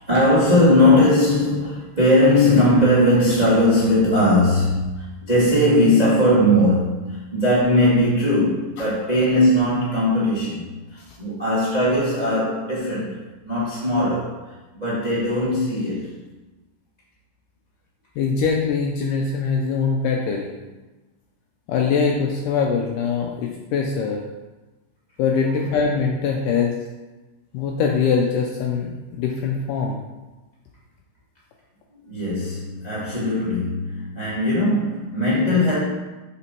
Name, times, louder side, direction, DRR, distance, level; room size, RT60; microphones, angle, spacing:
voice 1, 0.0-16.1 25.4-25.9 32.0-35.8, left 1 dB, 25° right, -9 dB, 0.9 m, -19 dB
voice 2, 18.2-20.5 21.7-24.2 25.2-26.8 27.5-30.0, left 5 dB, 85° left, 1 dB, 1.9 m, -22 dB
7.0 x 5.1 x 4.4 m, 1.2 s
omnidirectional pair, 4.4 m